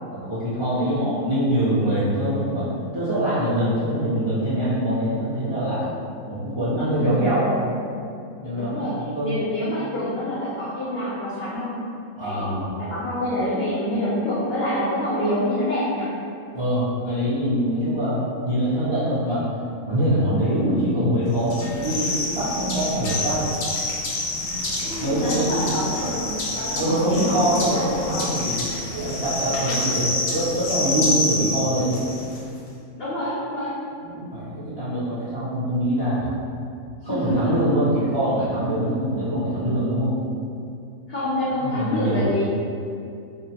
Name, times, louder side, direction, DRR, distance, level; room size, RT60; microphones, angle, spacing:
voice 1, 0.1-2.7 2.9-5.9 6.3-7.6 8.4-8.8 9.1-9.3 12.2-12.7 16.5-19.4 19.9-23.4 24.3-24.6 25.0-25.8 26.7-28.5 28.9-32.0 34.0-36.3 37.0-40.1 41.6-42.2, right 1 dB, 40° right, -12 dB, 0.4 m, -24 dB
voice 2, 0.7-1.1 6.9-7.4 8.5-11.8 12.2-12.5 12.8-16.1 24.8-28.4 29.7-29.8 33.0-33.8 37.0-37.5 41.1-42.5, left 1 dB, 70° left, -9 dB, 0.5 m, -27 dB
sound 1, 21.5-32.4, left 2 dB, 85° left, 1.2 m, -28 dB
2.7 x 2.0 x 2.8 m, 2.5 s
omnidirectional pair, 1.6 m